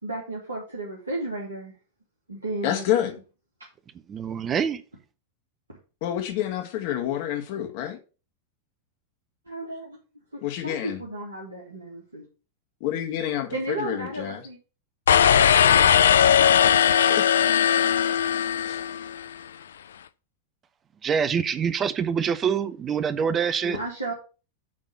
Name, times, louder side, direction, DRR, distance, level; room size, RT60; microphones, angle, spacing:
voice 1, 0.0-1.7 2.3-2.8 3.6-3.7 9.5-10.0 10.3-12.3 13.5-14.6 23.6-24.1, right 2 dB, 80° right, 1.9 m, -33 dB
voice 2, 2.6-3.2 6.0-8.0 10.4-11.0 12.8-14.4 17.1-17.2 18.6-18.9, left 11 dB, 50° left, 1.6 m, -28 dB
voice 3, 4.1-4.8 21.0-23.8, right 7 dB, 25° right, 0.6 m, -25 dB
sound 1, 15.1-19.3, left 9 dB, 65° left, 0.4 m, -19 dB
8.7 x 3.6 x 6.7 m
figure-of-eight pair, 90°, 0 cm